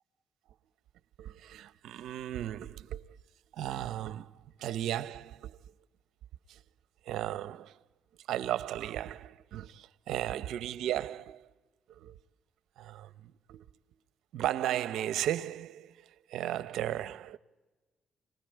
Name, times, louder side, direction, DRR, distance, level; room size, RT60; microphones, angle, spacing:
voice 1, 1.2-3.2 3.5-5.6 6.5-6.6 7.1-7.8 8.3-11.5 12.0-12.2 12.8-13.7 14.3-17.4, right 12 dB, 80° right, 0.8 m, -35 dB
29.0 x 20.0 x 9.0 m
cardioid pair, 90°, 0 cm